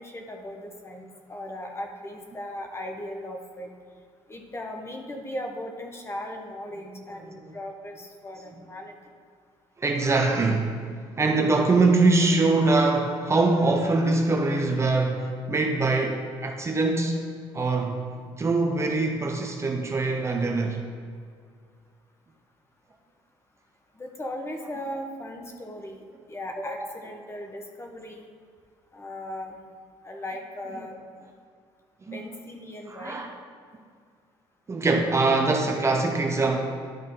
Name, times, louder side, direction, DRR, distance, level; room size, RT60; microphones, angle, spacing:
voice 1, 0.0-3.7 4.3-9.0 23.9-26.0 26.3-28.3 28.9-29.6 30.0-31.0 32.1-33.2, left 1 dB, 25° left, 2 dB, 1.1 m, -37 dB
voice 2, 9.8-17.2 17.5-18.0 18.4-20.8 32.0-32.2 32.9-33.3 34.7-36.6, right 3 dB, 25° right, 3 dB, 0.7 m, -23 dB
12.0 x 4.0 x 3.8 m, 2.1 s
cardioid pair, 100°, 11 cm